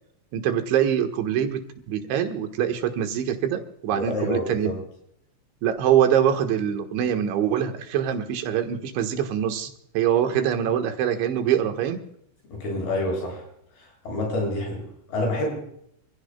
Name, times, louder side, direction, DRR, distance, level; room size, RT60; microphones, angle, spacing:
voice 1, 0.3-4.8 5.6-12.1, right 9 dB, 80° right, 5 dB, 3.7 m, -24 dB
voice 2, 3.9-4.7 12.5-13.4 13.8-15.6, left 1 dB, 55° left, 0 dB, 9.1 m, -28 dB
29.0 x 16.0 x 2.3 m, 0.71 s
omnidirectional pair, 5.3 m